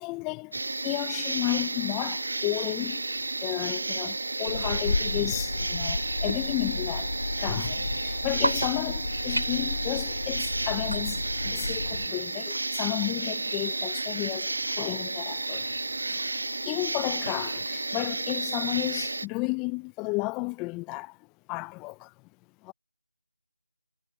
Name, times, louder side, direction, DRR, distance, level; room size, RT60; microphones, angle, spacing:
voice 1, 0.0-3.0 3.4-14.5 14.8-15.7 16.1-16.2 16.6-21.2 21.5-22.1 22.6-22.7, left 27 dB, 10° left, 0.7 m, -33 dB
sound 1, 0.5-19.3, right 2 dB, 60° right, 1.7 m, -32 dB
sound 2, 2.4-18.3, right 1 dB, 80° right, 3.7 m, -41 dB
sound 3, 4.5-12.1, left 3 dB, 55° left, 7.3 m, -33 dB
figure-of-eight pair, 165°, 0 cm